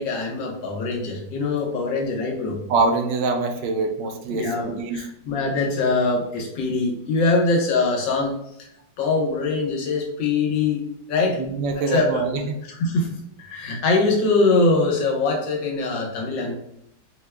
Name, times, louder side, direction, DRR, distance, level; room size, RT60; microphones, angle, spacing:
voice 1, 0.0-2.6 4.3-8.3 9.0-10.8 11.1-11.4 11.8-12.2 12.7-16.5, left 3 dB, 75° left, 0 dB, 1.6 m, -23 dB
voice 2, 2.7-5.0 11.4-12.6, right 3 dB, 75° right, 5 dB, 1.2 m, -24 dB
4.6 x 2.3 x 3.3 m, 0.78 s
omnidirectional pair, 2.0 m